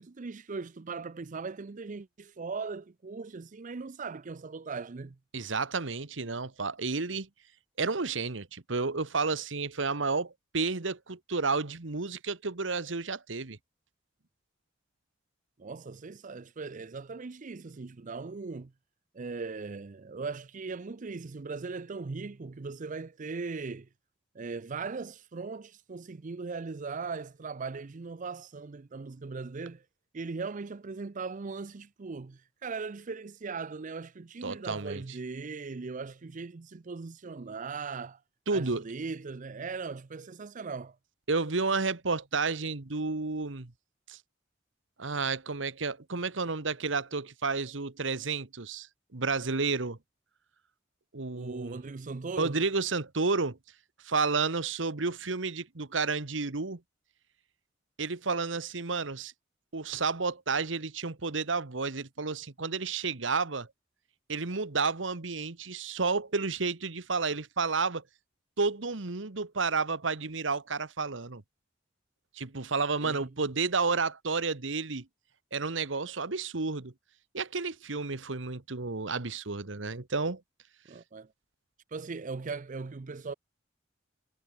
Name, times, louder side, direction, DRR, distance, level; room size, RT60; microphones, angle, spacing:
voice 1, 0.0-5.2 15.6-18.7 19.1-23.9 24.3-29.8 30.1-38.2 38.5-41.0 51.3-52.6 73.0-73.3 80.9-81.3 81.9-83.3, right 4 dB, 40° right, 0.5 m, -39 dB
voice 2, 5.3-7.3 7.8-13.6 34.4-35.0 38.5-38.8 41.3-43.7 44.1-44.2 45.0-48.9 49.1-50.0 51.1-51.8 52.4-53.6 54.0-56.8 58.0-59.3 59.7-63.7 64.3-68.0 68.6-71.4 72.3-75.1 75.5-76.9 77.3-80.4, right 4 dB, 75° right, 1.4 m, -31 dB
head